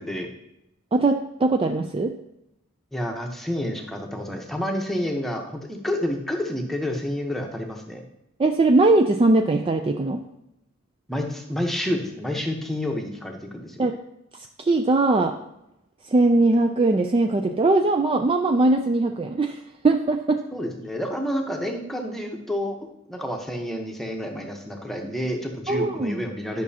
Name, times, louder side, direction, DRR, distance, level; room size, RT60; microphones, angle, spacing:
voice 1, 0.9-2.1 8.4-10.2 13.8-14.0 14.6-15.3 16.1-19.5 19.8-20.4 25.7-26.2, right 2 dB, 25° right, 4 dB, 0.4 m, -20 dB
voice 2, 2.9-8.0 11.1-13.8 20.5-22.8 23.1-26.6, left 1 dB, ahead, 2 dB, 1.0 m, -29 dB
10.5 x 6.0 x 2.8 m, 0.85 s
head